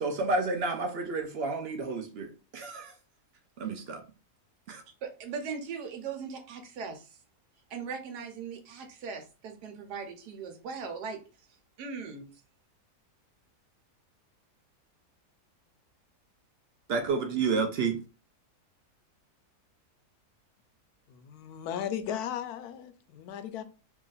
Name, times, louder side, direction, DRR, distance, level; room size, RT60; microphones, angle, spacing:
voice 1, 0.0-2.9 3.6-4.0 4.7-4.8 16.9-18.0, right 4 dB, 65° right, 0.6 m, -30 dB
voice 2, 5.0-7.2 7.7-11.2 11.8-12.3, right 5 dB, 80° right, 1.3 m, -39 dB
voice 3, 21.1-23.6, left 9 dB, 75° left, 1.1 m, -36 dB
3.0 x 2.5 x 3.9 m
omnidirectional pair, 1.7 m